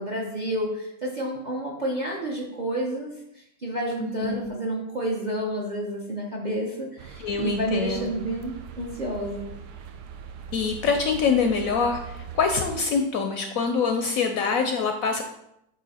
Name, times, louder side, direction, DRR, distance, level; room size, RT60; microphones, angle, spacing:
voice 1, 0.0-9.4, right 1 dB, 40° right, -1 dB, 0.7 m, -30 dB
voice 2, 4.0-4.6 7.2-8.1 10.5-15.2, left 5 dB, 70° left, 5 dB, 0.8 m, -25 dB
sound 1, 7.0-12.8, right 7 dB, 75° right, 1.1 m, -41 dB
8.4 x 3.0 x 4.1 m, 0.82 s
omnidirectional pair, 1.8 m